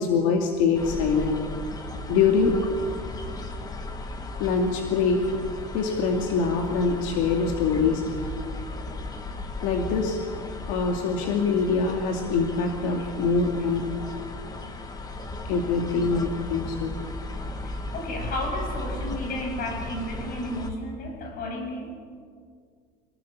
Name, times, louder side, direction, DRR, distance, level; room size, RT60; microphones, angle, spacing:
voice 1, 0.0-1.4 2.1-2.6 4.4-5.2 5.7-8.3 9.6-10.2 10.7-13.9 15.5-17.0, left 5 dB, 80° left, 2 dB, 2.4 m, -24 dB
sound 1, 0.7-20.7, left 2 dB, 20° left, 1.6 m, -36 dB
voice 2, 17.6-21.9, left 1 dB, 50° left, 3 dB, 6.9 m, -33 dB
26.0 x 19.5 x 7.3 m, 2.1 s
cardioid pair, 155°, 20 cm